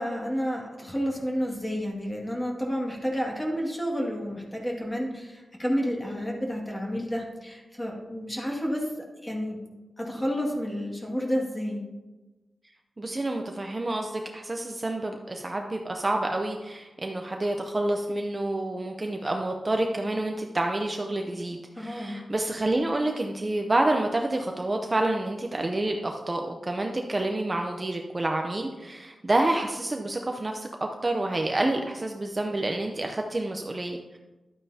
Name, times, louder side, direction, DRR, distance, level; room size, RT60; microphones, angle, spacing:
voice 1, 0.0-8.9 9.2-9.6 10.0-11.8 21.8-22.2, equal, 10° left, -1 dB, 2.0 m, -30 dB
voice 2, 13.0-34.2, right 2 dB, 25° right, 3 dB, 0.6 m, -28 dB
12.0 x 8.9 x 2.8 m, 1.1 s
wide cardioid pair, 130°, 0 cm